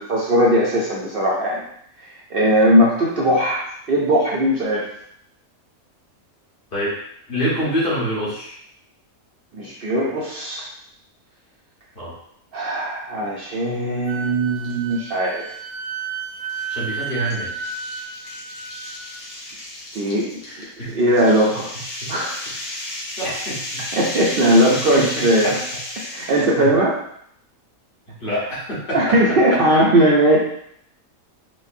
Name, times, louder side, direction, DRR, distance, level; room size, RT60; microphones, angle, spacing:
voice 1, 0.0-1.6 2.3-4.9 9.5-10.7 12.5-15.4 19.9-20.4 20.9-21.7 22.1-22.4 23.9-25.6 26.1-27.0 28.9-30.4, right 1 dB, 65° right, -4 dB, 0.6 m, -19 dB
voice 2, 7.3-8.6 11.9-12.1 16.7-17.6 20.4-21.0 22.0-22.1 22.6-23.8 24.7-25.6 26.0-26.2 26.6-26.7 28.2-29.6, equal, 40° left, -7 dB, 1.2 m, -27 dB
Wind instrument woodwind instrument, 14.1-19.2, right 5 dB, 85° right, 1.1 m, -32 dB
sound 1, 14.6-15.0 15.4-15.5 16.5-26.6, left 1 dB, 65° left, 1.3 m, -33 dB
4.8 x 2.1 x 2.6 m, 0.70 s
omnidirectional pair, 1.5 m